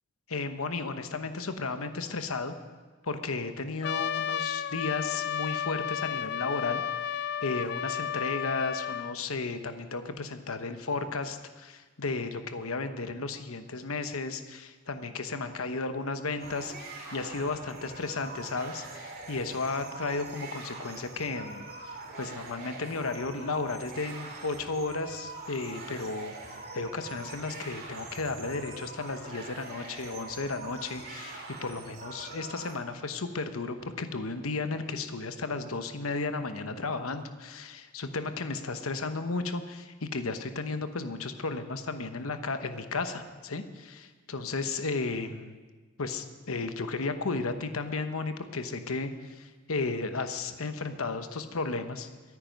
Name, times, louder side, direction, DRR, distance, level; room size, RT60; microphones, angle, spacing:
voice 1, 0.3-2.5 3.0-6.8 7.4-26.3 26.7-45.6 46.0-52.1, left 3 dB, 70° left, 9 dB, 1.0 m, -34 dB
Trumpet, 3.8-9.2, left 9 dB, 50° left, 0.4 m, -32 dB
sound 1, 16.4-32.7, right 3 dB, 45° right, 2.4 m, -43 dB
22.0 x 9.7 x 5.4 m, 1.4 s
head